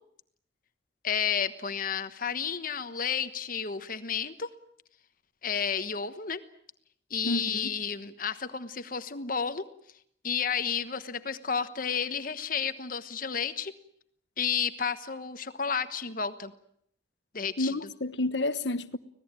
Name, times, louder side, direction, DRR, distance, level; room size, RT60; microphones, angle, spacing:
voice 1, 1.0-4.5 5.4-6.4 7.1-9.7 10.2-13.7 14.4-16.5 17.3-17.7, left 7 dB, 50° left, 1.2 m, -31 dB
voice 2, 7.2-7.7 17.6-19.0, left 2 dB, 85° left, 1.2 m, -30 dB
25.5 x 18.0 x 9.0 m
head